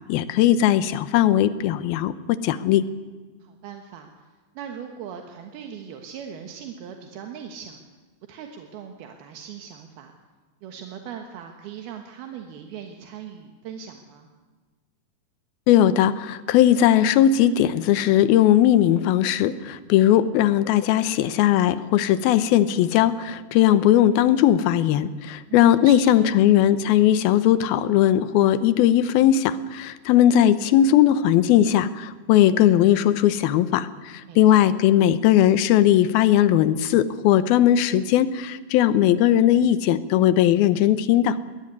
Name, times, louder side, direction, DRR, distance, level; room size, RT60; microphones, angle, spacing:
voice 1, 0.1-2.9 15.7-41.4, left 11 dB, 80° left, 14 dB, 2.7 m, -18 dB
voice 2, 3.4-4.3 4.6-7.8 8.3-10.1 10.6-14.3 25.5-26.4 34.2-34.8, right 8 dB, 80° right, 4 dB, 3.3 m, -39 dB
20.5 x 18.0 x 9.7 m, 1.4 s
omnidirectional pair, 4.3 m